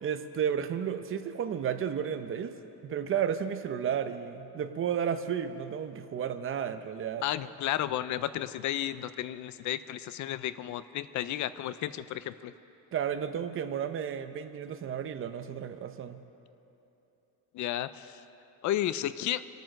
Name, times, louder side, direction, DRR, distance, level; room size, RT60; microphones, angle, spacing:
voice 1, 0.0-2.6 2.8-7.2 12.9-16.2, right 8 dB, 35° right, 9 dB, 0.7 m, -32 dB
voice 2, 7.2-12.5 17.5-18.2 18.6-19.4, left 12 dB, 55° left, 15 dB, 0.5 m, -33 dB
24.5 x 9.2 x 6.4 m, 3.0 s
cardioid pair, 165°, 35 cm